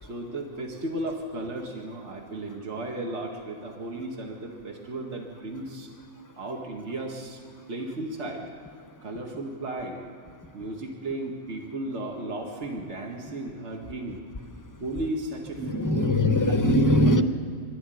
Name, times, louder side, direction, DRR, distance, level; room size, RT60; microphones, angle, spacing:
voice 1, 0.0-5.9 6.4-7.4 7.7-8.5 9.0-10.1 10.5-14.2 14.8-16.1 16.4-16.5 16.8-17.0, right 2 dB, 55° right, 0 dB, 2.2 m, -35 dB
voice 2, 15.6-17.2, left 1 dB, 15° left, 8 dB, 0.8 m, -21 dB
24.0 x 13.5 x 9.2 m, 2.1 s
omnidirectional pair, 1.4 m